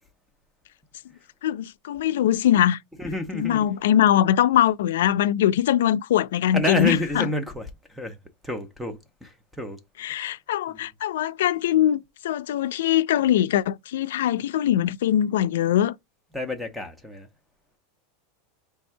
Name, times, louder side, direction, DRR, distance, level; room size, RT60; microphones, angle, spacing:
voice 1, 1.4-2.8 3.3-7.3 10.0-16.0, left 11 dB, 85° left, 0.3 m, -22 dB
voice 2, 3.0-3.7 6.5-8.2 8.4-9.8 10.1-10.3 10.7-10.8 16.3-17.3, left 1 dB, ahead, 0.5 m, -29 dB
3.3 x 2.7 x 4.4 m
supercardioid pair, 180°, 0 cm